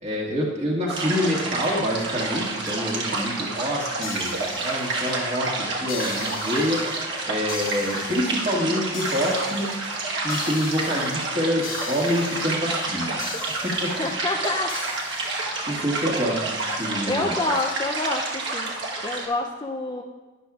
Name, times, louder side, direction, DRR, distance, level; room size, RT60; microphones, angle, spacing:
voice 1, 0.0-6.8 7.2-9.7 10.1-13.4 13.6-13.9 15.7-17.3, equal, 30° right, -3 dB, 1.8 m, -26 dB
sound 1, 0.9-19.3, right 3 dB, 55° right, 1.2 m, -29 dB
sound 2, 4.0-5.4 5.9-7.0 7.5-8.5 8.9-9.7 10.3-11.2 11.6-12.5 13.2-14.1 14.7-15.5, left 6 dB, 60° left, 1.0 m, -38 dB
voice 2, 13.8-14.8 17.1-18.7 19.0-20.0, left 2 dB, 20° left, 2 dB, 0.4 m, -27 dB
12.0 x 10.5 x 2.4 m, 1.3 s
head